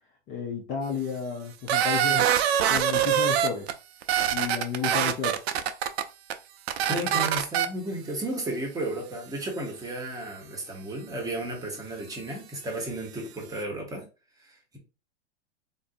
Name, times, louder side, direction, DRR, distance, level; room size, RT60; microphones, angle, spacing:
voice 1, 0.3-2.3 2.7-3.7 4.3-5.4, left 6 dB, 25° left, 0.6 m, -32 dB
sound 1, 1.7-3.7 4.0-6.0 6.3-6.4 6.7-7.7, right 10 dB, 65° right, 0.6 m, -24 dB
voice 2, 6.9-14.0 14.4-14.8, right 1 dB, 10° right, 1.0 m, -33 dB
3.7 x 2.6 x 2.5 m
hypercardioid pair, 130°, 35 cm